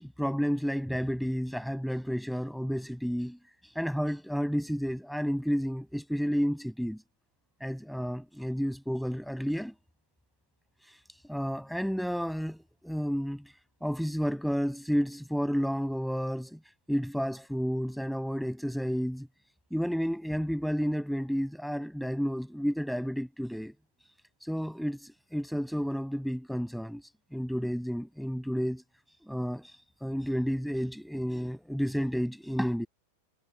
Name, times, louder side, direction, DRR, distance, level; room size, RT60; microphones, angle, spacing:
voice 1, 0.0-3.4 3.8-7.0 7.6-9.7 11.3-13.4 13.8-16.6 16.9-19.3 19.7-23.7 24.5-25.0 25.3-27.0 27.3-28.8 29.3-29.7 30.0-32.9, equal, ahead, 6.0 m, -31 dB
figure-of-eight pair, 90°, 0 cm